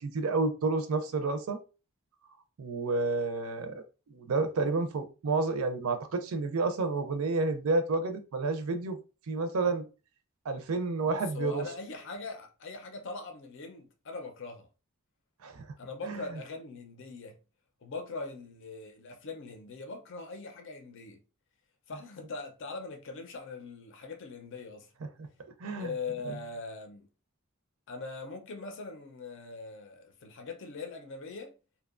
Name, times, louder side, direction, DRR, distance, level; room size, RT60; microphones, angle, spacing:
voice 1, 0.0-1.6 2.6-9.0 9.3-9.8 10.5-11.6 15.4-15.6 16.0-16.2 25.2-25.3 25.6-25.9, right 3 dB, 75° right, 0.4 m, -30 dB
voice 2, 11.0-14.7 15.8-17.4 17.8-21.2 21.9-24.9 25.8-27.1 27.9-31.5, left 3 dB, 60° left, 0.5 m, -41 dB
2.7 x 2.2 x 2.4 m
head